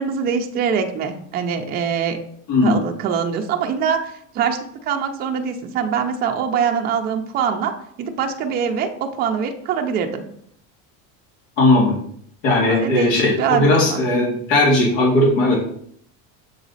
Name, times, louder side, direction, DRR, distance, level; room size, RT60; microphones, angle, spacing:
voice 1, 0.0-2.2 2.6-10.2 12.7-14.0, right 7 dB, 25° right, 3 dB, 0.5 m, -23 dB
voice 2, 2.5-2.8 11.6-12.0 12.4-15.6, left 2 dB, 80° left, -3 dB, 2.4 m, -17 dB
7.1 x 4.0 x 4.0 m, 0.66 s
cardioid pair, 165°, 39 cm